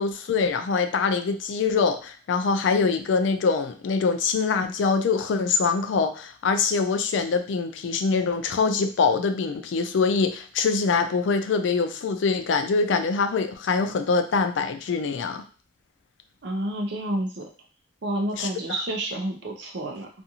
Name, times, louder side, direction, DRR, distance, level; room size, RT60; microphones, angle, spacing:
voice 1, 0.0-15.4 18.4-18.5, left 4 dB, 80° left, 8 dB, 0.4 m, -24 dB
voice 2, 16.4-17.4 18.0-20.1, right 1 dB, 65° right, 2 dB, 0.5 m, -29 dB
2.5 x 2.4 x 2.8 m, 0.39 s
head